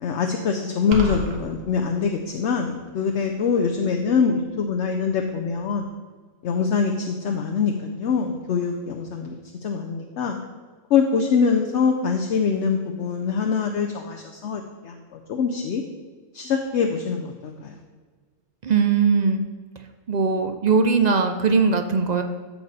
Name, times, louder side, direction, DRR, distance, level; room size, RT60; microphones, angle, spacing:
voice 1, 0.0-5.8 6.4-9.4 9.6-10.4 10.9-14.9 15.3-15.8 16.3-17.7, left 5 dB, 65° left, 3 dB, 0.9 m, -24 dB
sound 1, 0.9-1.4, right 1 dB, 80° right, 1.5 m, -28 dB
voice 2, 18.6-19.5 20.1-22.2, right 5 dB, 50° right, 6 dB, 0.5 m, -20 dB
13.5 x 4.7 x 4.1 m, 1.5 s
omnidirectional pair, 1.4 m